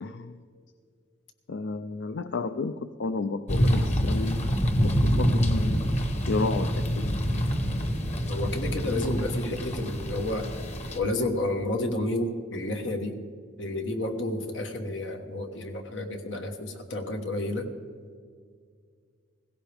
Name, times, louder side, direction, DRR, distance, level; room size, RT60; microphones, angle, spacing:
voice 1, 0.0-0.4 1.5-4.5 4.8-5.8 6.3-7.2, left 3 dB, 70° left, 10 dB, 0.5 m, -32 dB
sound 1, 3.5-11.0, equal, 40° left, 1.1 m, -26 dB
voice 2, 8.3-10.5 10.9-13.2 13.6-17.7, left 1 dB, 85° left, 5 dB, 1.4 m, -31 dB
16.5 x 16.0 x 3.5 m, 2.1 s
head